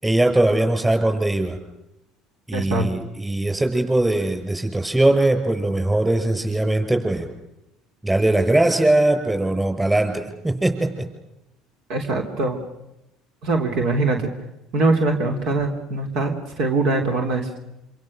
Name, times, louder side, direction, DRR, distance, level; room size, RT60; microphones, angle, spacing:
voice 1, 0.0-1.6 2.5-7.3 8.0-11.1, right 1 dB, 15° right, 6 dB, 6.3 m, -20 dB
voice 2, 2.5-2.9 11.9-12.6 13.4-14.3 14.7-17.6, right 2 dB, 65° right, 4 dB, 3.4 m, -22 dB
26.5 x 26.0 x 6.8 m, 0.89 s
hypercardioid pair, 80°, 0 cm